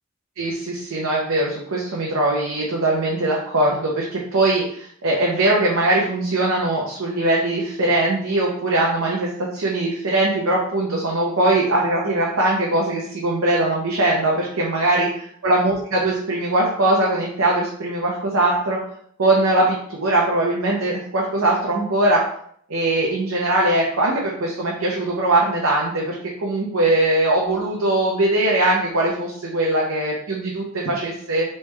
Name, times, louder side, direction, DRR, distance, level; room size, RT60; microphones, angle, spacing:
voice 1, 0.4-15.1 15.4-18.8 19.2-22.3 22.7-31.4, right 2 dB, 75° right, -4 dB, 0.8 m, -21 dB
3.3 x 3.2 x 3.4 m, 0.63 s
head